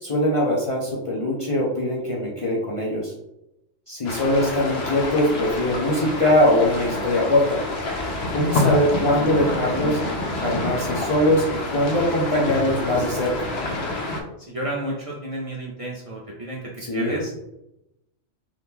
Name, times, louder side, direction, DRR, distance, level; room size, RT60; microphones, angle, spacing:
voice 1, 0.0-3.1 3.9-7.6 8.3-10.0 10.4-13.5 16.8-17.2, left 1 dB, 40° left, -4 dB, 0.5 m, -22 dB
sound 1, 4.0-14.2, left 2 dB, 70° left, 0.8 m, -27 dB
voice 2, 14.5-16.6 16.9-17.3, right 1 dB, 45° right, -4 dB, 0.5 m, -31 dB
2.8 x 2.4 x 3.5 m, 0.87 s
omnidirectional pair, 1.1 m